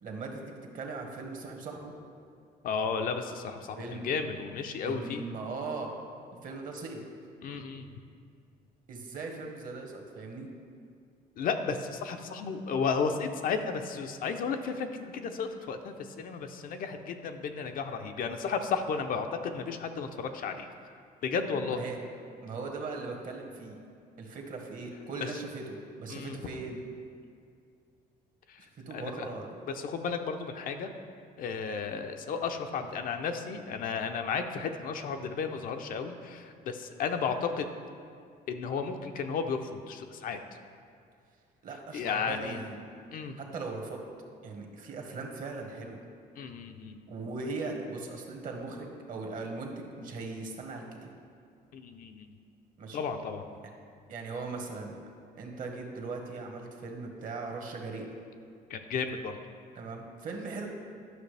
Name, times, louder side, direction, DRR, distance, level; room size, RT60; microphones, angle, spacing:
voice 1, 0.0-1.9 3.7-4.1 4.8-5.9 6.4-7.0 8.9-10.5 21.7-22.0 22.4-23.8 24.2-26.8 28.6-29.6 41.6-42.7 43.4-44.0 44.4-46.0 47.1-51.1 52.8-53.0 53.6-53.7 54.1-55.0 55.3-58.1 59.7-60.7, right 3 dB, 50° right, 2 dB, 1.3 m, -39 dB
voice 2, 2.6-5.2 7.4-7.9 11.4-20.7 21.2-21.8 25.2-25.3 26.1-26.4 28.5-28.6 28.9-29.3 29.7-30.9 31.4-37.7 38.5-40.4 41.9-42.6 43.1-43.3 46.4-47.0 51.7-52.3 52.9-53.4 58.7-59.4, left 5 dB, 55° left, 6 dB, 0.6 m, -33 dB
11.0 x 6.0 x 3.3 m, 2.3 s
cardioid pair, 110°, 17 cm